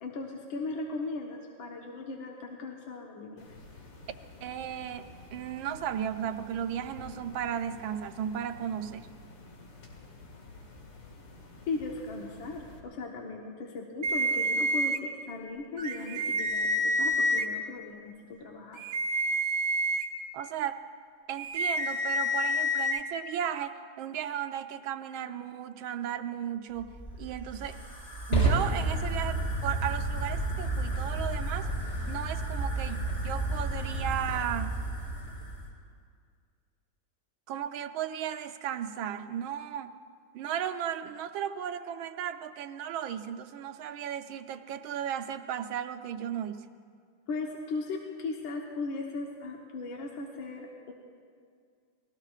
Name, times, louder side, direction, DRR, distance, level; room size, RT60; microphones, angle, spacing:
voice 1, 0.0-3.4 11.7-18.8 47.3-50.9, left 3 dB, 65° left, -1 dB, 1.9 m, -37 dB
sound 1, 3.4-12.8, left 2 dB, 85° left, 2.9 m, -50 dB
voice 2, 4.4-9.1 20.3-20.8 21.3-26.9 27.2-27.8 28.3-31.7 32.1-33.0 33.2-34.8 37.5-39.9 40.3-46.7, right 9 dB, 75° right, 9 dB, 1.4 m, -35 dB
sound 2, 14.0-15.0 15.8-17.4 18.7-20.0 21.4-23.0, equal, 45° right, 1.4 m, -28 dB
Fire, 26.8-35.7, right 2 dB, 25° left, 3.9 m, -31 dB
28.5 x 20.5 x 2.4 m, 2.2 s
omnidirectional pair, 2.4 m